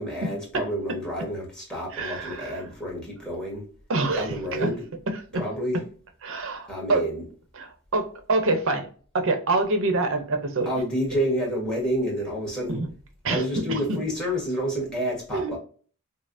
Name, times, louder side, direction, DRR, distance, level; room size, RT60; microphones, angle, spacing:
voice 1, 0.0-3.7 4.1-4.8 5.4-5.8 6.7-7.2 10.6-12.8 13.3-15.6, equal, 5° left, -2 dB, 1.3 m, -29 dB
voice 2, 1.9-2.6 3.9-4.7 5.1-5.4 6.2-7.0 7.6-8.9 9.1-10.7 12.7-12.9 13.2-14.0 15.3-15.6, right 2 dB, 60° right, 6 dB, 0.7 m, -26 dB
5.2 x 2.0 x 2.5 m, 0.42 s
head